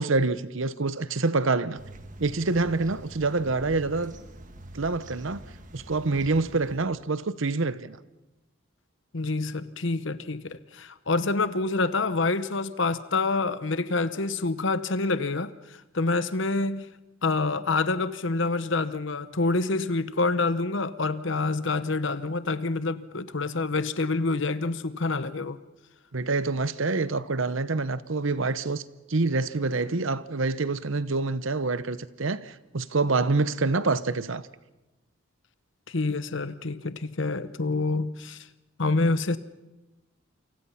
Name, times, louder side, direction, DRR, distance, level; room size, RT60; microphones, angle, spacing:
voice 1, 0.0-1.8 2.2-4.1 4.7-5.4 5.7-8.0 26.1-28.8 29.1-34.5, right 3 dB, 70° right, 0.9 m, -26 dB
sound 1, 1.8-6.8, right 1 dB, 40° right, 1.6 m, -45 dB
voice 2, 9.1-16.9 17.2-25.6 35.9-38.5 38.8-39.4, left 3 dB, 60° left, 1.0 m, -27 dB
28.0 x 25.0 x 5.8 m
head